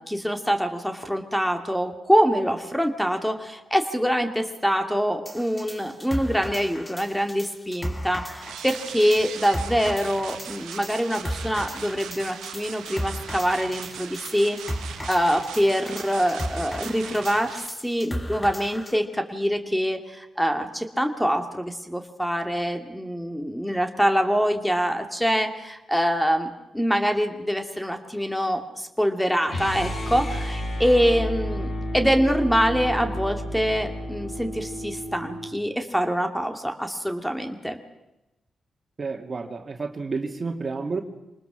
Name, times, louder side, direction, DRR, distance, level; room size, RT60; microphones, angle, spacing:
voice 1, 0.0-14.6 15.1-37.8, equal, 5° left, 6 dB, 2.4 m, -25 dB
sound 1, 5.3-19.0, equal, 20° left, 3.3 m, -36 dB
sound 2, 8.4-17.7, right 9 dB, 85° right, 1.1 m, -40 dB
sound 3, 29.5-35.5, equal, 55° left, 8.0 m, -31 dB
voice 2, 39.0-41.0, right 4 dB, 45° right, 4 dB, 2.4 m, -30 dB
26.0 x 20.0 x 6.2 m, 0.96 s
supercardioid pair, 45°, 0 cm